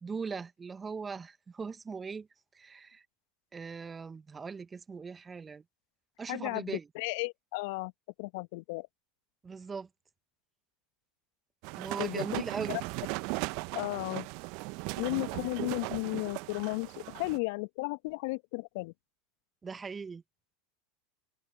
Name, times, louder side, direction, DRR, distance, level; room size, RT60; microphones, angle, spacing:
voice 1, 0.0-2.3 2.5-3.0 3.5-5.6 6.2-6.9 9.4-9.9 11.8-12.8 19.6-20.2, right 5 dB, 20° right, 1.4 m, -40 dB
voice 2, 6.3-7.9 8.2-8.9 12.0-12.8 13.7-14.3 15.0-18.9, left 27 dB, 60° left, 1.7 m, -34 dB
sound 1, 11.6-17.4, right 28 dB, 55° right, 1.0 m, -37 dB
hypercardioid pair, 85°, 0 cm